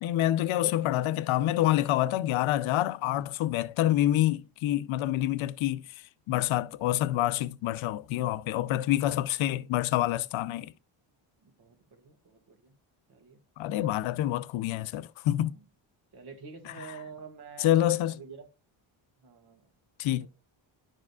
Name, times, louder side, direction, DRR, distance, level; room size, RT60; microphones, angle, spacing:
voice 1, 0.0-6.0 6.3-10.7 13.6-15.5 17.6-18.1 20.0-20.3, left 13 dB, 80° left, 0.6 m, -27 dB
voice 2, 11.4-12.8 13.1-13.4 15.5-15.6 16.1-18.5 19.2-19.7 20.2-20.3, right 5 dB, 55° right, 1.7 m, -48 dB
11.5 x 4.9 x 2.3 m
cardioid pair, 110°, 47 cm